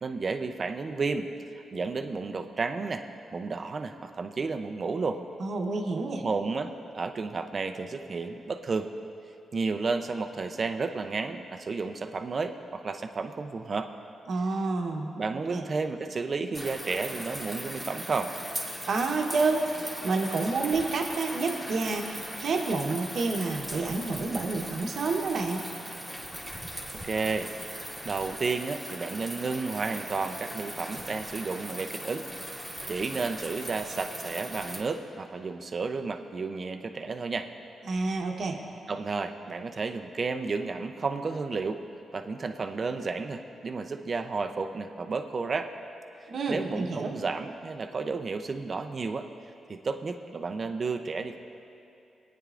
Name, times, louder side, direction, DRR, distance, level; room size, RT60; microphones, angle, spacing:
voice 1, 0.0-1.3 1.7-3.0 3.3-5.2 6.2-8.9 9.5-13.9 15.2-18.3 27.0-27.5 28.0-32.3 32.9-37.5 38.9-41.8 42.1-45.7 46.5-49.3 49.7-51.4, right 4 dB, 40° right, 6 dB, 0.6 m, -32 dB
voice 2, 5.4-6.2 14.3-15.1 15.5-15.6 18.9-25.7 37.8-38.6 46.3-47.1, right 3 dB, 60° right, 2 dB, 1.0 m, -29 dB
sound 1, 16.5-34.8, equal, ahead, 1.8 m, -39 dB
20.0 x 9.5 x 2.5 m, 2.6 s
cardioid pair, 95°, 0 cm